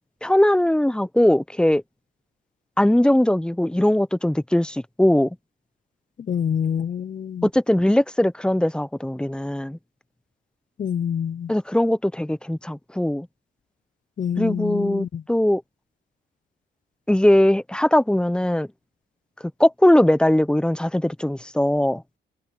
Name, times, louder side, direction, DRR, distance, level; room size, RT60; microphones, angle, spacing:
voice 1, 0.2-1.8 2.8-5.4 7.4-9.8 11.5-13.3 14.4-15.6 17.1-18.7 19.6-22.0, left 1 dB, 5° left, 0.9 m, -20 dB
voice 2, 6.3-7.5 10.8-11.5 14.2-15.2, left 8 dB, 40° left, 0.7 m, -26 dB
cardioid pair, 90°, 20 cm